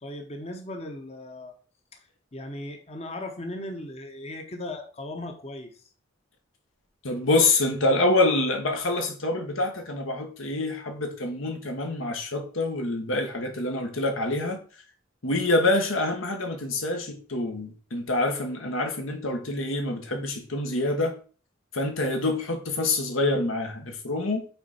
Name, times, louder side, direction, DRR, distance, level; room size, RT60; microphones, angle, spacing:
voice 1, 0.0-1.5 1.9-5.8, left 1 dB, 30° left, 0.8 m, -37 dB
voice 2, 7.0-14.6 15.2-21.2 21.7-24.5, left 2 dB, 85° left, 1.4 m, -26 dB
5.7 x 4.3 x 4.2 m
head